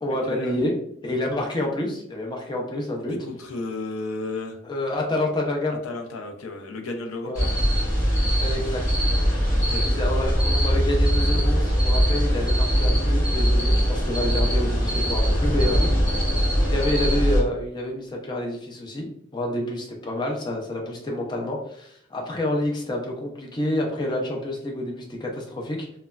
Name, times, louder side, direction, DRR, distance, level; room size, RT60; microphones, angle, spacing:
voice 1, 0.0-0.7 1.0-3.2 4.6-5.8 7.2-7.5 8.4-9.0 9.8-15.9 16.6-25.9, left 1 dB, 20° left, 0 dB, 0.4 m, -28 dB
voice 2, 3.2-4.6 5.8-7.5 9.5-10.1, left 2 dB, 85° left, 4 dB, 0.4 m, -33 dB
sound 1, 7.4-17.4, equal, 40° left, 0.8 m, -21 dB
3.0 x 2.1 x 2.3 m, 0.70 s
head